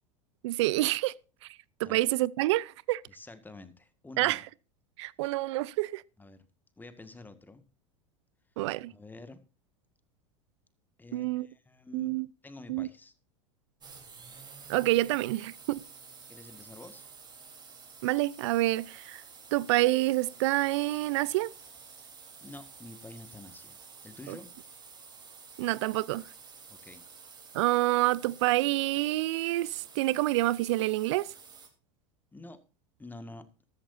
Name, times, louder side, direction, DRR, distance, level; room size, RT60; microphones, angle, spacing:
voice 1, 0.4-1.1 1.8-3.0 4.2-4.4 5.0-6.0 8.6-8.9 11.1-11.5 11.9-12.3 12.7-12.9 14.7-15.8 18.0-19.2 19.5-21.5 24.3-24.4 25.6-26.3 27.5-31.3, right 18 dB, 65° right, 0.6 m, -27 dB
voice 2, 3.1-4.4 6.2-6.5 6.8-7.6 8.9-9.4 11.0-13.1 16.3-17.1 22.4-23.8 24.0-24.5 26.7-27.0 32.3-32.6 33.0-33.5, left 2 dB, 10° left, 1.9 m, -48 dB
sound 1, 13.8-31.7, right 5 dB, 25° right, 3.8 m, -51 dB
14.0 x 13.0 x 2.7 m
hypercardioid pair, 85°, 16 cm